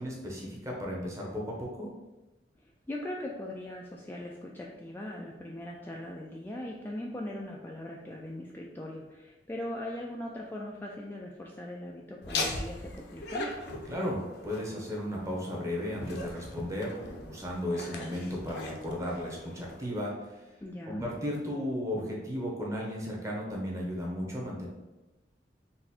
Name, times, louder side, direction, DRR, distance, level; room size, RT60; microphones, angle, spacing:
voice 1, 0.0-1.9 13.9-17.0 17.2-20.3 20.9-24.7, left 1 dB, 20° right, -3 dB, 1.0 m, -35 dB
voice 2, 2.6-13.5 20.6-21.1, left 1 dB, 10° left, -2 dB, 0.3 m, -40 dB
Laughter, 12.2-19.9, left 2 dB, 65° left, 0.7 m, -40 dB
4.0 x 2.5 x 4.2 m, 1.1 s
head